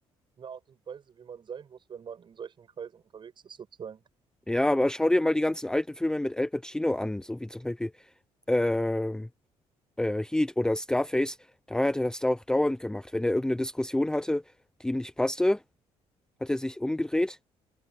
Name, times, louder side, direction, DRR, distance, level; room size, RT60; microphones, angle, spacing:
voice 1, 0.4-4.0, right 7 dB, 45° right, 7.5 m, -43 dB
voice 2, 4.5-7.9 8.5-9.3 10.0-11.4 11.7-14.4 14.8-15.6 16.4-17.4, left 1 dB, 5° left, 0.7 m, -27 dB
cardioid pair, 105°, 11 cm